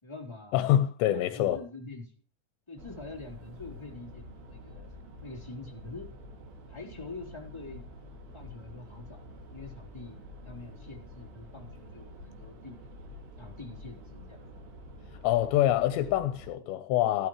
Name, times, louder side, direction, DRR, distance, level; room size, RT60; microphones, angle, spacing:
voice 1, 0.0-0.7 1.1-2.1 2.7-4.9 5.2-6.1 6.7-7.9 8.3-10.2 10.4-12.8 13.4-14.4, left 3 dB, 5° left, 3.0 m, -45 dB
voice 2, 0.5-1.6 15.2-17.3, left 12 dB, 85° left, 3.0 m, -25 dB
sound 1, 2.8-16.5, left 1 dB, 75° right, 4.8 m, -48 dB
17.0 x 12.5 x 3.2 m
omnidirectional pair, 5.0 m